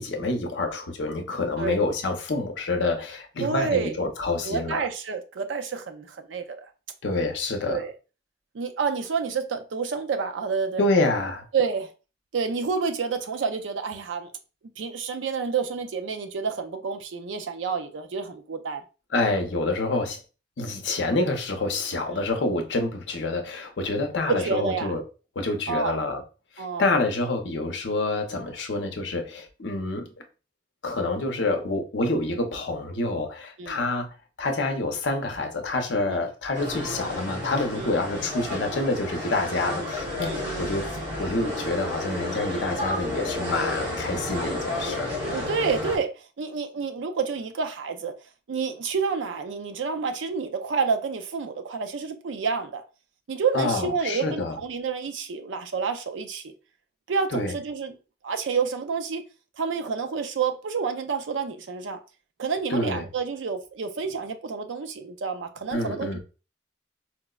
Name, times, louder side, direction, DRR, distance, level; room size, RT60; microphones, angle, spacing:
voice 1, 0.0-4.8 7.0-7.8 10.8-11.5 19.1-20.2 20.6-25.0 25.4-26.2 26.6-30.1 30.8-40.9 41.2-45.1 53.5-54.6 57.3-57.5 62.7-63.1 65.7-66.2, left 2 dB, 70° left, 0.6 m, -27 dB
voice 2, 3.4-4.0 4.4-6.7 7.7-7.9 8.5-10.8 11.5-11.9 12.3-14.3 14.8-18.8 22.1-22.2 24.3-24.9 25.7-26.0 26.6-26.9 33.6-33.8 36.1-36.2 37.8-38.0 40.3-40.8 45.3-48.1 48.5-52.8 53.3-56.5 57.1-58.0 58.2-59.2 59.6-62.0 62.4-66.2, right 5 dB, 85° right, 0.4 m, -29 dB
sound 1, 36.5-46.0, left 1 dB, 70° right, 1.4 m, -31 dB
4.4 x 2.0 x 2.3 m
head